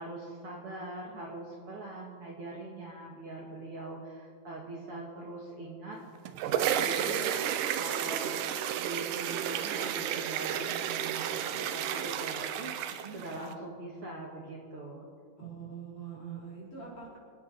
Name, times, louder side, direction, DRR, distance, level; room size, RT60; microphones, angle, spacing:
voice 1, 0.0-6.0 6.5-8.3 8.8-15.1, right 2 dB, 50° right, -2 dB, 2.2 m, -42 dB
sound 1, 6.1-13.5, right 10 dB, 85° right, 2.3 m, -32 dB
voice 2, 6.7-7.1 13.0-13.2 15.4-17.2, right 6 dB, 45° left, -7 dB, 5.8 m, -44 dB
27.0 x 9.3 x 4.1 m, 2.1 s
omnidirectional pair, 3.7 m